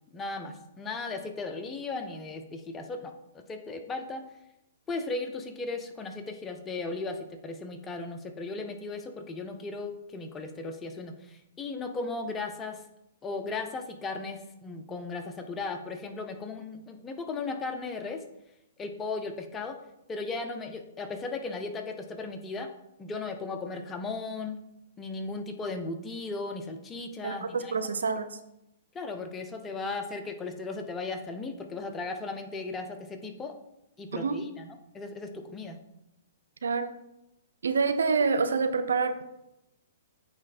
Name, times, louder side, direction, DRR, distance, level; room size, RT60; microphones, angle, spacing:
voice 1, 0.1-4.2 4.9-12.8 13.2-18.2 18.8-19.8 20.1-22.7 23.0-24.6 25.0-27.7 28.9-33.5 34.0-35.8, left 3 dB, 15° left, 5 dB, 0.7 m, -36 dB
voice 2, 27.2-28.3 34.1-34.4 36.6-36.9 37.6-39.2, right 4 dB, 85° right, 10 dB, 0.6 m, -27 dB
8.7 x 3.2 x 4.2 m, 0.86 s
hypercardioid pair, 135°, 0 cm